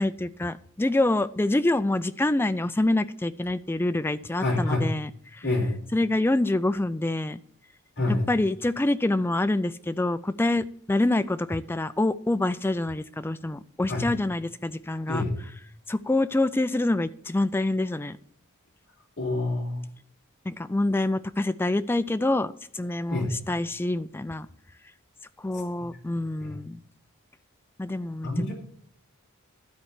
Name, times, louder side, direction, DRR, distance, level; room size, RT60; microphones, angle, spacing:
voice 1, 0.0-5.4 5.9-7.4 8.1-15.2 15.9-18.2 20.5-24.5 25.4-26.8 27.8-28.3, left 2 dB, 10° left, 12 dB, 0.3 m, -26 dB
voice 2, 4.4-4.9 5.4-5.8 8.0-8.2 13.9-14.1 15.1-15.3 19.2-19.9 23.1-23.3 25.8-25.9 26.4-26.6 28.2-28.5, left 2 dB, 50° left, -4 dB, 3.2 m, -27 dB
12.5 x 4.4 x 8.1 m, 0.64 s
head